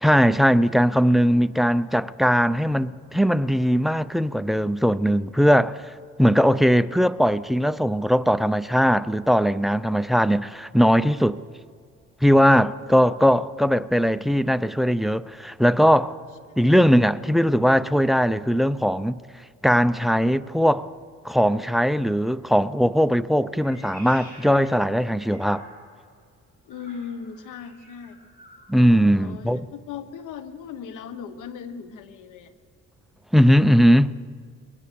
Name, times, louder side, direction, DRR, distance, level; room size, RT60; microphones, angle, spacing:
voice 1, 0.0-5.9 6.2-11.4 12.2-16.2 16.6-19.2 19.6-20.9 21.2-25.6 28.7-29.6 33.3-34.1, equal, ahead, 0.5 m, -19 dB
Meow, 23.5-26.1 26.7-28.7, equal, 30° left, 7.7 m, -48 dB
voice 2, 26.6-28.2 29.2-32.5, left 7 dB, 90° left, 1.4 m, -38 dB
22.5 x 18.5 x 6.9 m
cardioid pair, 90°, 30 cm